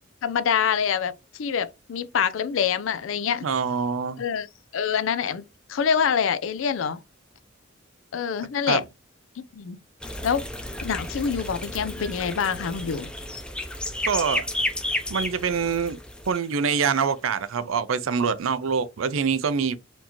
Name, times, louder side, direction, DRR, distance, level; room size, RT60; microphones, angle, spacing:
voice 1, 0.2-1.1 1.4-3.5 4.2-4.5 4.7-7.0 8.1-8.8 9.4-9.8 10.2-10.4 10.8-13.1, left 7 dB, 75° left, 0.4 m, -25 dB
voice 2, 3.4-4.2 8.7-8.8 14.1-14.5 15.1-16.0 16.3-19.8, right 6 dB, 85° right, 0.5 m, -25 dB
sound 1, 10.0-17.1, left 1 dB, 5° left, 0.6 m, -32 dB
4.4 x 2.8 x 2.9 m
head